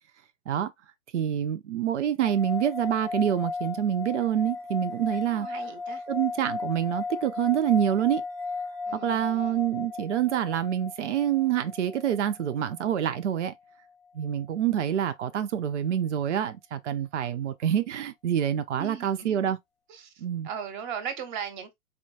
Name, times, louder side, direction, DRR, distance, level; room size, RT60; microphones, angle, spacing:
voice 1, 1.1-5.5 6.1-8.2 8.9-13.5 14.1-19.6 20.2-20.5, right 10 dB, 60° right, 0.6 m, -27 dB
sound 1, 2.2-13.5, left 4 dB, ahead, 0.5 m, -36 dB
voice 2, 5.2-6.0 8.9-9.6 18.7-19.4 19.9-21.7, right 7 dB, 35° right, 0.9 m, -38 dB
4.2 x 2.3 x 2.7 m
figure-of-eight pair, 110°, 42 cm